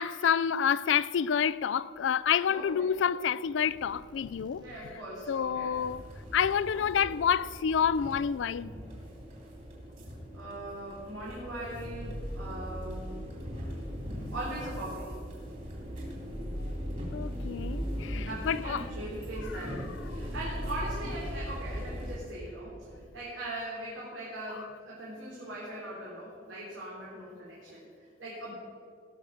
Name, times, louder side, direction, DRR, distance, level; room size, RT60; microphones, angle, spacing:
voice 1, 0.0-4.7 5.3-6.0 6.3-8.7 17.1-18.9, left 7 dB, 70° left, 0.4 m, -28 dB
voice 2, 2.5-2.9 4.6-5.7 6.7-7.0 10.3-13.3 14.3-15.2 18.1-28.5, right 1 dB, 90° right, 3.4 m, -40 dB
sound 1, 3.7-23.3, equal, 25° right, 1.3 m, -55 dB
sound 2, 5.7-22.2, equal, 40° right, 3.4 m, -39 dB
18.0 x 6.5 x 6.4 m
head